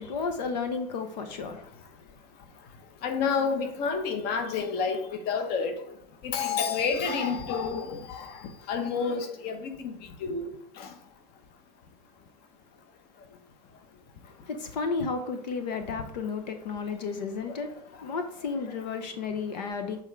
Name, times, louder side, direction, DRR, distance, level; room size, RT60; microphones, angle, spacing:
voice 1, 0.0-1.8 14.3-17.7 18.0-20.0, left 5 dB, 90° left, 0.9 m, -33 dB
voice 2, 3.0-5.8 6.2-10.5 10.8-10.9 17.5-17.6, left 5 dB, 50° left, 1.1 m, -29 dB
7.7 x 3.7 x 4.6 m
supercardioid pair, 115°, 21 cm